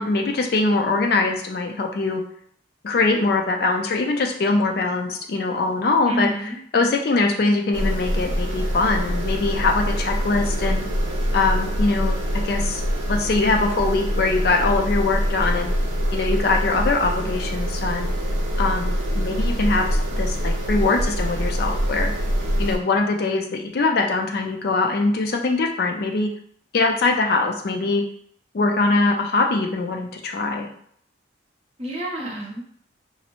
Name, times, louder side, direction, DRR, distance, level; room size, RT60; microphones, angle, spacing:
voice 1, 0.0-2.2 2.8-10.8 11.3-12.8 13.1-15.7 16.1-18.1 18.6-22.1 22.6-26.3 26.7-28.0 28.5-30.7, left 3 dB, 50° left, 3 dB, 0.4 m, -22 dB
voice 2, 6.1-6.6 31.8-32.7, right 1 dB, 30° right, -2 dB, 0.6 m, -28 dB
sound 1, 7.7-22.8, equal, 85° right, 0.6 m, -24 dB
2.6 x 2.0 x 2.9 m, 0.62 s
head